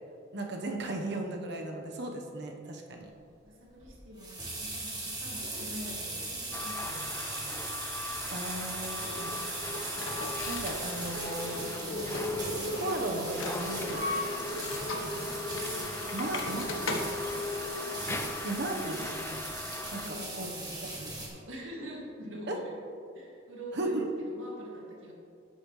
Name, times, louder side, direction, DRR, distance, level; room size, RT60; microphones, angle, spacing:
voice 1, 0.3-3.1 8.3-9.4 10.5-11.7 12.8-14.0 14.7-15.0 16.1-17.2 18.4-19.4 19.9-20.5 21.0-21.1 22.5-22.6 23.8-24.1, right 2 dB, 55° right, 2 dB, 1.1 m, -36 dB
voice 2, 3.5-7.6 7.8-8.2 8.5-8.7 20.0-22.8 23.1-25.1, equal, 80° right, -3 dB, 2.1 m, -45 dB
sound 1, 3.8-21.3, right 2 dB, 20° right, 1.9 m, -39 dB
sound 2, 6.5-20.1, left 3 dB, 10° left, 0.4 m, -42 dB
sound 3, 9.0-18.4, left 2 dB, 75° left, 1.2 m, -36 dB
12.0 x 10.5 x 3.2 m, 2.5 s
head